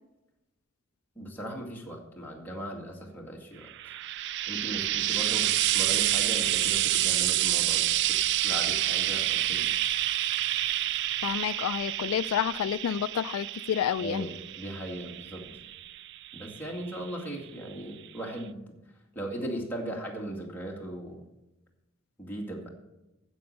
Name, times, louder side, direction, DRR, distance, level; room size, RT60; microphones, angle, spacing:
voice 1, 1.2-3.7 4.4-8.2 8.4-9.7 14.0-15.6 16.3-18.7 19.1-21.2 22.2-22.7, right 1 dB, 10° left, -2 dB, 2.1 m, -38 dB
Frying (food), 3.7-17.1 18.1-18.2, right 14 dB, 55° right, 0.3 m, -28 dB
voice 2, 11.2-14.3, left 9 dB, 80° left, 16 dB, 0.3 m, -29 dB
9.6 x 7.8 x 6.6 m, 0.97 s
head